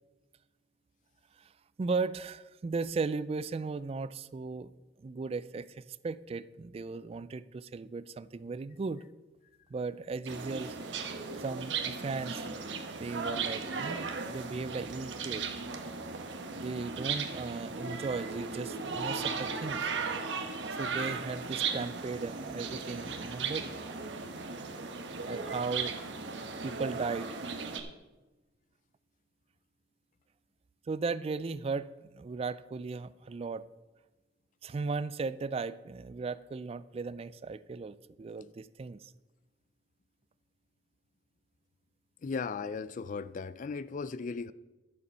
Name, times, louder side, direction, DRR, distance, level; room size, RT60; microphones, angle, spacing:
voice 1, 1.8-4.7 5.0-9.0 9.7-10.8 11.4-12.4 13.0-15.4 16.5-19.9 20.8-23.7 25.3-25.9 26.6-27.4 30.9-33.6 34.6-39.1, right 4 dB, 30° right, 0.3 m, -36 dB
sound 1, 10.3-27.8, right 5 dB, 75° right, 1.1 m, -37 dB
voice 2, 42.2-44.5, left 4 dB, 45° left, 0.4 m, -36 dB
11.0 x 6.9 x 5.4 m
head